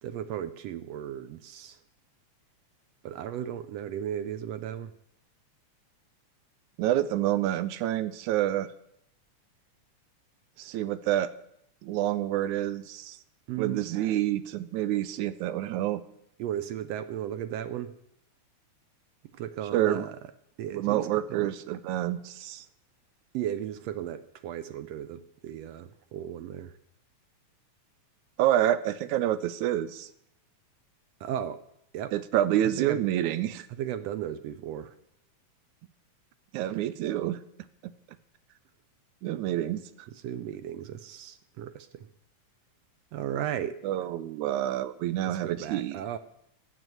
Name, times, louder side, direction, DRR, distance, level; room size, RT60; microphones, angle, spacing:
voice 1, 0.0-1.8 3.0-4.9 13.5-13.9 16.4-17.9 19.4-20.2 20.6-21.5 23.3-26.8 31.2-31.6 31.9-32.1 32.8-33.0 33.7-34.9 40.1-42.1 43.1-43.8 45.3-46.2, right 10 dB, 75° right, 12 dB, 1.6 m, -35 dB
voice 2, 6.8-8.7 10.6-11.3 11.8-13.2 13.6-16.0 19.7-20.1 20.7-22.7 28.4-30.1 32.1-33.7 36.5-37.4 37.8-37.9 39.2-39.8 43.8-46.0, right 12 dB, 90° right, 14 dB, 2.1 m, -28 dB
12.0 x 8.0 x 7.9 m, 0.74 s
omnidirectional pair, 3.4 m